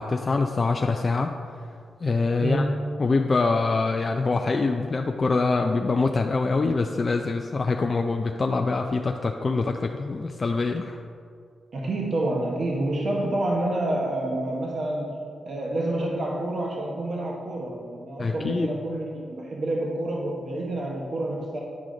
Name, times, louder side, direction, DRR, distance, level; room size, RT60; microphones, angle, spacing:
voice 1, 0.0-1.3 2.0-2.6 3.0-11.0 18.2-18.7, left 3 dB, 45° left, 3 dB, 0.4 m, -24 dB
voice 2, 2.4-2.9 11.7-21.6, right 1 dB, 60° right, -1 dB, 1.1 m, -28 dB
9.7 x 4.9 x 3.8 m, 2.2 s
cardioid pair, 60°, 0 cm